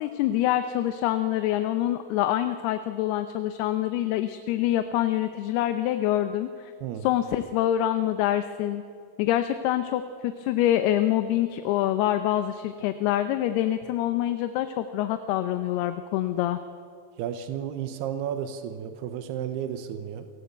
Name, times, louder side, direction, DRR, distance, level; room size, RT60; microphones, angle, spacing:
voice 1, 0.0-6.7 7.0-8.8 9.2-16.6, left 12 dB, 85° left, 9 dB, 2.8 m, -26 dB
voice 2, 17.2-20.3, right 9 dB, 90° right, 8 dB, 3.1 m, -32 dB
28.5 x 18.0 x 8.1 m, 2.3 s
omnidirectional pair, 4.6 m